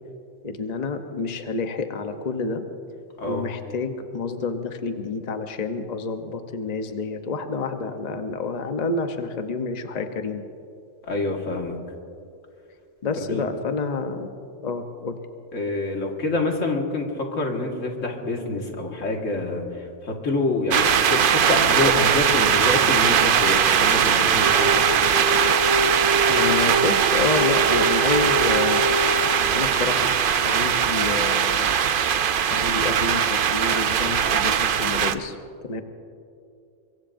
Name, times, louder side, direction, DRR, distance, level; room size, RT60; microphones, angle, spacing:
voice 1, 0.4-2.6 3.2-10.4 13.0-14.3 14.6-15.2 26.3-28.8 29.5-30.1 30.4-31.7 32.5-35.4 35.6-35.8, left 4 dB, 35° left, 6 dB, 0.9 m, -28 dB
voice 2, 11.0-11.8 13.2-13.4 15.5-24.7, left 2 dB, 85° left, 1 dB, 2.1 m, -26 dB
sound 1, 20.7-35.1, right 8 dB, 55° right, 0.7 m, -20 dB
Wind instrument woodwind instrument, 24.3-29.5, right 1 dB, 75° right, 4.7 m, -26 dB
24.0 x 22.5 x 2.6 m, 2.6 s
omnidirectional pair, 1.3 m